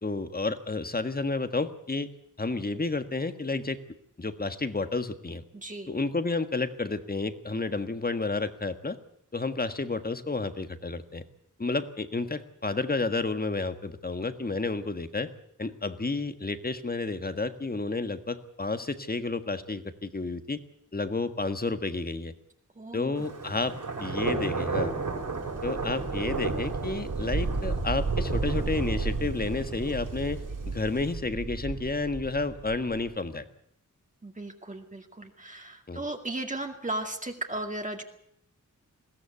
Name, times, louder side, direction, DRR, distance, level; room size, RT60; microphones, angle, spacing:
voice 1, 0.0-2.1 2.4-3.8 4.2-5.4 5.9-9.0 9.3-11.2 11.6-15.3 15.6-20.6 20.9-22.3 22.9-24.9 25.6-33.5 35.9-36.0, left 3 dB, 30° left, 10 dB, 1.6 m, -31 dB
voice 2, 5.5-5.9 22.8-23.1 34.2-38.0, right 2 dB, 25° right, 3 dB, 2.3 m, -36 dB
Thunder, 23.2-33.0, right 4 dB, 80° right, 6.4 m, -31 dB
21.5 x 16.5 x 8.3 m, 0.70 s
wide cardioid pair, 85°, 31 cm